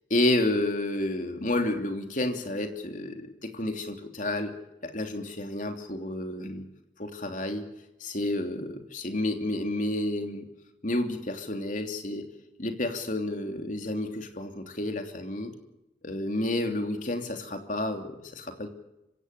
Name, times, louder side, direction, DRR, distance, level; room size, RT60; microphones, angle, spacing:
voice 1, 0.1-4.5 4.8-6.7 7.0-7.7 8.0-10.5 10.8-12.3 12.6-15.5 16.0-18.7, left 1 dB, 45° left, 5 dB, 3.2 m, -30 dB
25.5 x 17.0 x 8.4 m, 0.90 s
head